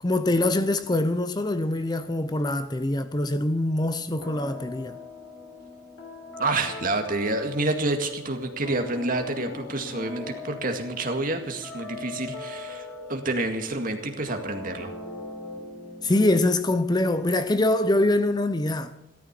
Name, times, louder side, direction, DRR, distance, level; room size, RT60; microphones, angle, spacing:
voice 1, 0.0-5.0 16.0-18.9, left 1 dB, 20° left, 0.6 m, -24 dB
sound 1, 4.2-16.6, left 2 dB, 90° left, 4.4 m, -40 dB
voice 2, 6.4-14.9, right 2 dB, 45° right, 2.0 m, -28 dB
15.0 x 13.0 x 6.0 m
head